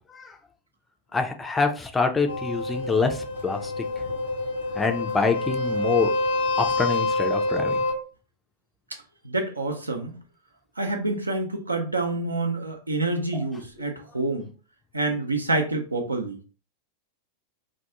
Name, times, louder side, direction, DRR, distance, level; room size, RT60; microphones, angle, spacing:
voice 1, 1.1-3.7 4.8-6.1 6.6-7.8 13.3-13.4, left 4 dB, 15° left, 0.4 m, -26 dB
sound 1, 2.3-7.9, left 2 dB, 70° left, 0.5 m, -27 dB
voice 2, 9.2-10.2 10.8-14.5 14.9-16.4, right 2 dB, 80° right, 0.5 m, -27 dB
2.3 x 2.2 x 2.8 m
figure-of-eight pair, 90°, 0 cm